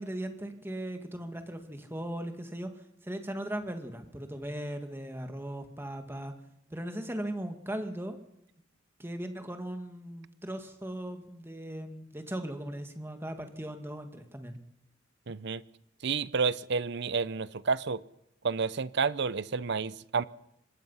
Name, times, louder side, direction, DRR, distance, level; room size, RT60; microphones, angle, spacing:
voice 1, 0.0-2.7 3.0-6.3 6.7-8.2 9.0-14.6, right 1 dB, 10° right, 6 dB, 2.0 m, -38 dB
voice 2, 15.3-15.6 16.0-18.0 18.4-20.2, right 5 dB, 60° right, 17 dB, 0.7 m, -30 dB
25.0 x 19.5 x 5.7 m, 0.82 s
head